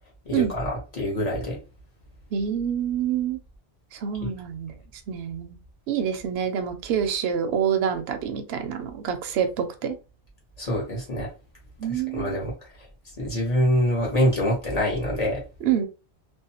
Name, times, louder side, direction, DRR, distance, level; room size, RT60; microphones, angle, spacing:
voice 1, 0.2-1.6 4.2-4.3 10.6-11.3 11.9-12.5 13.2-15.4, equal, 35° left, -3 dB, 1.1 m, -25 dB
voice 2, 2.3-3.4 3.9-4.8 5.1-5.6 5.9-10.0 11.8-12.4 15.6-15.9, right 8 dB, 70° right, 7 dB, 0.8 m, -27 dB
2.6 x 2.2 x 2.7 m, 0.31 s
omnidirectional pair, 1.1 m